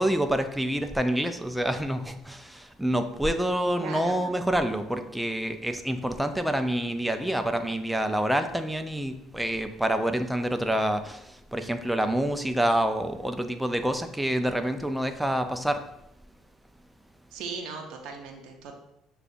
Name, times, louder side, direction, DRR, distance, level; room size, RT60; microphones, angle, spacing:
voice 1, 0.0-15.8, right 1 dB, 5° right, 8 dB, 0.5 m, -27 dB
voice 2, 3.8-4.2 17.3-18.7, right 4 dB, 65° right, 2 dB, 0.6 m, -37 dB
6.5 x 2.3 x 2.6 m, 0.82 s
hypercardioid pair, 65°, 0 cm